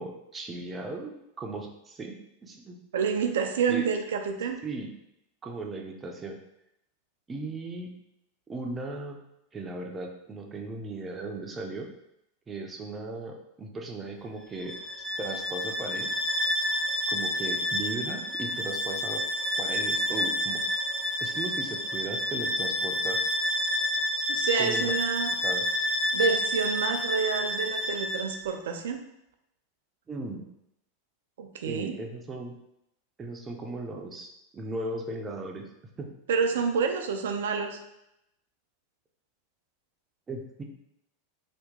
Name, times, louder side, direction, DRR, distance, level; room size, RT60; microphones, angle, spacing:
voice 1, 0.0-2.8 3.7-3.9 4.6-4.9 5.4-6.4 7.3-8.0 8.5-9.2 9.5-11.9 12.5-14.8 15.2-16.1 17.1-19.3 19.6-20.6 21.2-23.2 24.6-24.9 25.4-25.6 30.1-30.5 31.7-32.5 33.2-35.6 36.0-36.1 40.3-40.6, right 2 dB, 20° right, 2 dB, 0.6 m, -37 dB
voice 2, 2.9-4.6 24.3-25.3 26.1-29.0 31.4-32.0 36.3-37.8, right 5 dB, 75° right, 5 dB, 0.4 m, -28 dB
Bowed string instrument, 14.6-28.4, left 1 dB, 5° left, 0.9 m, -29 dB
2.9 x 2.2 x 3.5 m, 0.84 s
hypercardioid pair, 95°, 0 cm